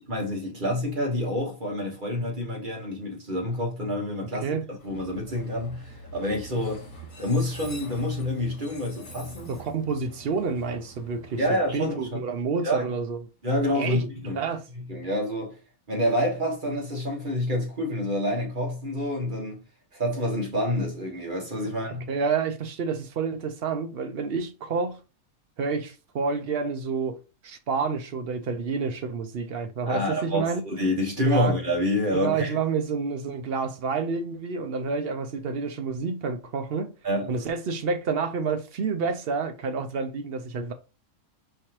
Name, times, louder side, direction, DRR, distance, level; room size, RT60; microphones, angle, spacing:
voice 1, 0.1-4.4 4.8-6.8 7.2-9.5 11.4-12.2 12.6-12.8 13.4-14.4 14.7-15.6 15.9-19.6 19.9-22.1 29.9-32.6 37.0-37.3, left 1 dB, 35° right, 1.5 m, -27 dB
Train, 4.8-12.7, right 1 dB, 35° left, 1.3 m, -45 dB
voice 2, 9.5-11.4 11.7-13.2 13.7-14.0 14.4-14.6 22.1-25.0 25.6-27.2 27.4-30.6 31.3-31.5 32.1-36.9 37.3-40.7, right 5 dB, 55° right, 0.7 m, -29 dB
4.8 x 3.4 x 2.9 m
omnidirectional pair, 1.5 m